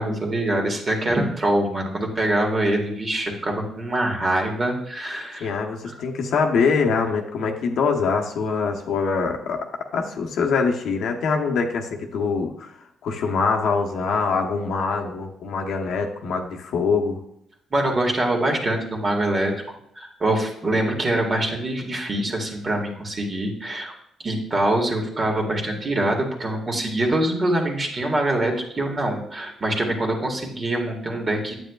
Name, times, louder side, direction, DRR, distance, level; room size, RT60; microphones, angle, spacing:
voice 1, 0.0-5.5 17.7-19.5 20.0-23.9 24.2-31.5, right 1 dB, 35° right, 1 dB, 1.8 m, -24 dB
voice 2, 5.4-9.7 9.9-12.7 13.0-17.2, left 5 dB, 75° left, 2 dB, 1.0 m, -24 dB
9.0 x 8.2 x 2.4 m, 0.77 s
cardioid pair, 90°, 0 cm